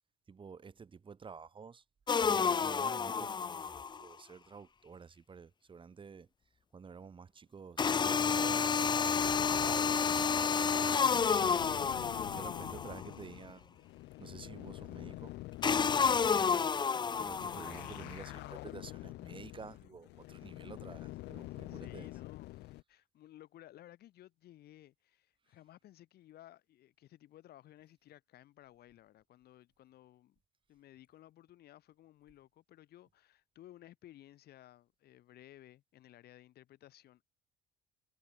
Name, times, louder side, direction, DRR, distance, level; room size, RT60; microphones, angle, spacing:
voice 1, 0.3-1.8 2.2-6.3 6.7-9.0 9.5-10.8 11.1-13.8 14.2-15.3 16.3-16.9 17.2-22.1, right 5 dB, 30° right, 1.7 m, -51 dB
sound 1, 2.1-4.0 7.8-13.1 15.6-18.0, left 6 dB, 25° left, 0.6 m, -30 dB
sound 2, 9.2-22.8, left 19 dB, 85° left, 2.7 m, -47 dB
voice 2, 18.2-18.5 21.7-22.6 22.9-30.4 30.7-37.2, left 13 dB, 70° left, 4.5 m, -57 dB
cardioid pair, 110°, 17 cm